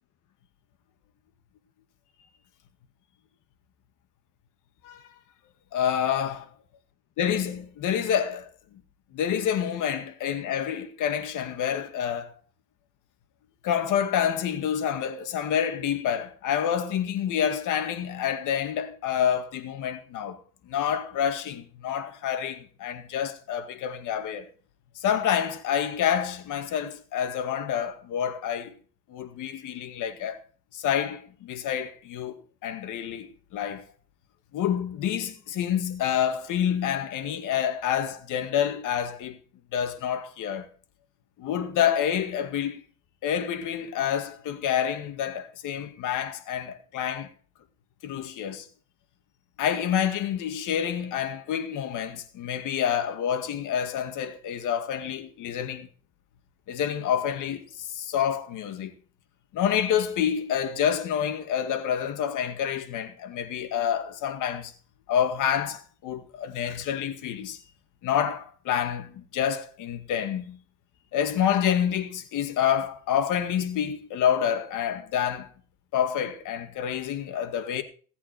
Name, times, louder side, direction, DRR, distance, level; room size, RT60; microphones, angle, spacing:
voice 1, 5.7-6.5 7.2-8.5 9.1-12.4 13.6-20.4 20.7-24.5 25.0-28.7 29.1-30.4 30.7-33.8 34.5-39.4 39.7-40.7 41.4-42.8 43.2-47.3 48.0-48.7 49.6-55.9 56.7-58.9 59.5-64.7 65.1-67.6 68.0-70.6 71.1-75.5 75.9-77.8, left 9 dB, 85° left, 2.0 m, -28 dB
17.5 x 8.4 x 4.4 m
cardioid pair, 90°, 30 cm